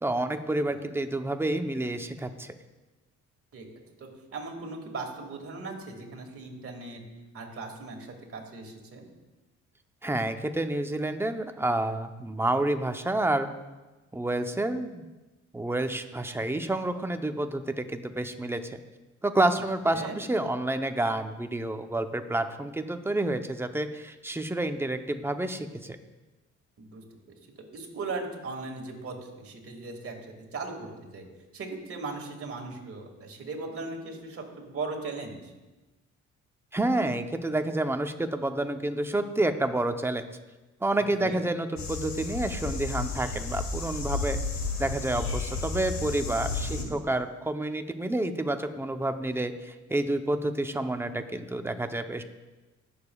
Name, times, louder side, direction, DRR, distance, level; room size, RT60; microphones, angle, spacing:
voice 1, 0.0-2.5 10.0-13.5 14.1-15.1 15.5-18.8 19.2-26.0 36.7-40.2 40.8-44.4 44.8-52.2, right 1 dB, 10° right, 7 dB, 0.7 m, -29 dB
voice 2, 4.0-7.0 7.3-9.1 19.9-20.2 26.8-27.0 27.7-31.3 31.5-35.5 41.2-41.4 46.6-46.9, right 3 dB, 50° right, 1 dB, 2.0 m, -38 dB
sound 1, 41.8-46.8, left 4 dB, 65° left, 1.5 m, -32 dB
18.0 x 7.0 x 2.3 m, 1.1 s
cardioid pair, 90°, 30 cm